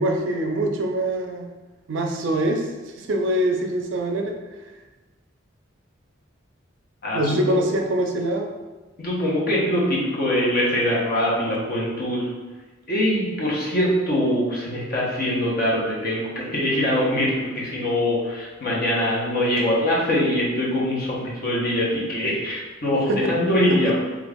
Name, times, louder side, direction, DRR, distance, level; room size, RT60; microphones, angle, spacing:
voice 1, 0.0-1.5 1.9-2.7 3.0-4.3 7.1-8.5 22.9-23.2 23.7-23.8, right 1 dB, 65° right, 3 dB, 0.4 m, -24 dB
voice 2, 9.0-12.3 12.9-23.9, left 1 dB, 50° left, -5 dB, 0.9 m, -23 dB
3.0 x 2.4 x 3.4 m, 1.2 s
head